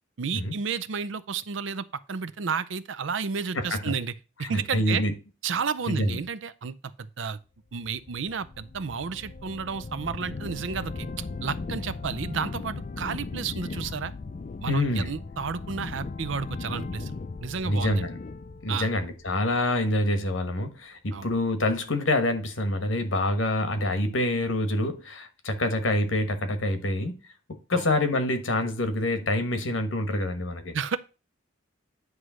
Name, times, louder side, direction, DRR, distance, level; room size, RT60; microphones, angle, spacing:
voice 1, 0.2-4.1 4.4-5.0 5.4-7.4 7.7-14.1 14.6-17.2 17.4-18.1 18.7-18.9 21.1-21.3 27.7-27.9 30.7-31.0, right 5 dB, 75° right, 0.5 m, -32 dB
voice 2, 3.5-3.9 4.4-5.1 5.9-6.2 14.7-15.1 17.6-18.2 18.6-27.2 27.7-30.7, left 1 dB, 90° left, 1.3 m, -26 dB
sound 1, 7.8-19.9, left 3 dB, 40° left, 0.4 m, -38 dB
9.6 x 3.2 x 6.2 m
head